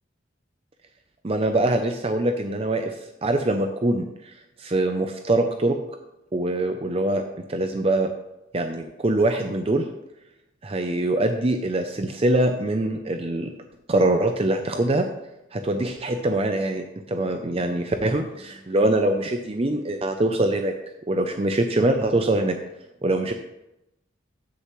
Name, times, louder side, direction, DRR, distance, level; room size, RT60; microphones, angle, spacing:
voice 1, 1.2-2.9 3.2-4.3 4.6-5.7 6.3-7.2 7.5-8.1 8.5-9.9 10.6-13.5 13.9-15.1 15.5-20.7 21.1-22.5 23.0-23.3, right 1 dB, 30° right, 6 dB, 0.5 m, -23 dB
15.0 x 6.6 x 3.2 m, 0.90 s
head